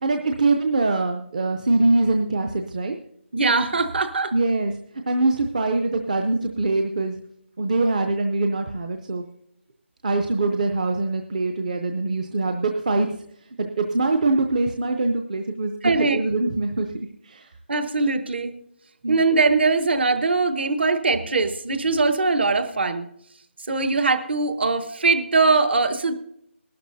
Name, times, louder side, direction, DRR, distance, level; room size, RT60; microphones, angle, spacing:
voice 1, 0.0-3.0 4.3-4.7 5.1-7.2 7.6-9.2 10.0-13.1 13.6-15.7 16.0-16.9 17.2-17.5 19.0-19.2, right 2 dB, 35° right, 5 dB, 0.6 m, -23 dB
voice 2, 3.3-4.3 15.8-16.2 17.7-18.5 19.1-23.1 23.7-26.1, right 3 dB, 55° right, 10 dB, 1.1 m, -21 dB
20.5 x 12.0 x 2.7 m, 0.72 s
figure-of-eight pair, 170°, 7 cm